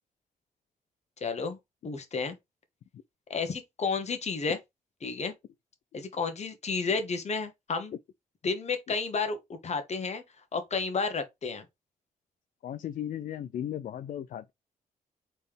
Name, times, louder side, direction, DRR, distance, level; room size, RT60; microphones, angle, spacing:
voice 1, 1.2-1.6 1.8-2.3 3.3-4.6 5.0-5.3 5.9-7.9 8.4-10.2 10.5-11.6, left 4 dB, 50° left, 1.3 m, -31 dB
voice 2, 12.6-14.5, left 10 dB, 65° left, 0.4 m, -36 dB
4.2 x 3.4 x 3.5 m
cardioid pair, 80°, 15 cm